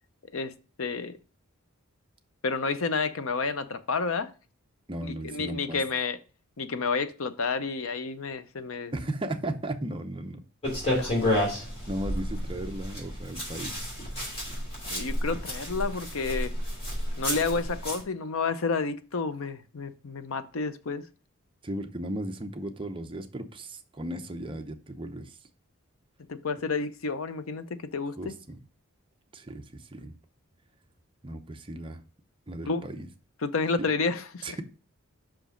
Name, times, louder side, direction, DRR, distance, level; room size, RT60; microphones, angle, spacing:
voice 1, 0.8-1.2 2.4-4.3 5.0-6.2 6.6-8.9 10.9-11.5 14.9-16.5 17.2-21.1 26.3-28.4 32.7-32.9 33.4-34.6, left 4 dB, 65° left, 0.6 m, -30 dB
voice 2, 4.9-5.8 8.9-10.4 11.9-13.9 21.6-25.4 28.2-28.6 29.3-30.2 31.2-32.0 32.5-33.1 33.8-33.9 34.4-34.6, right 1 dB, 25° right, 0.7 m, -36 dB
sound 1, 10.6-18.0, left 1 dB, 25° left, 3.0 m, -31 dB
5.9 x 5.0 x 5.0 m
head